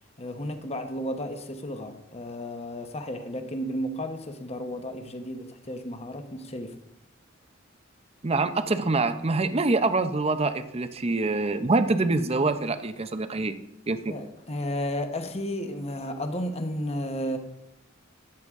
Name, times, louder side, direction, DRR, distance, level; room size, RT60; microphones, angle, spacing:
voice 1, 0.2-6.8 14.1-17.4, equal, 30° left, 1.1 m, -33 dB
voice 2, 8.2-13.5 13.9-14.2, right 3 dB, 30° right, 0.6 m, -25 dB
13.0 x 9.3 x 3.7 m
head